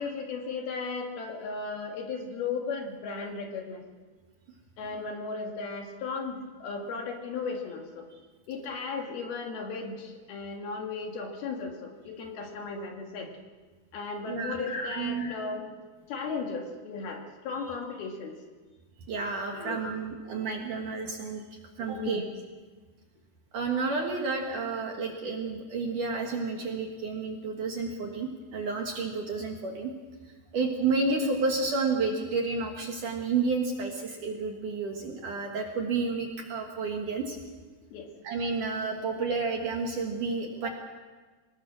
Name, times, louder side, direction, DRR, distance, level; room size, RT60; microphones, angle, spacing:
voice 1, 0.0-3.8 4.8-8.1 8.5-13.3 13.9-15.8 16.1-18.4 19.5-20.0 21.8-22.2 37.9-38.1, left 4 dB, 60° left, 2 dB, 3.4 m, -36 dB
voice 2, 14.3-14.6 14.9-15.3 19.1-22.2 23.5-29.9 30.5-37.4 38.2-40.7, right 4 dB, 60° right, 2 dB, 2.5 m, -31 dB
24.5 x 19.5 x 6.2 m, 1.4 s
omnidirectional pair, 5.3 m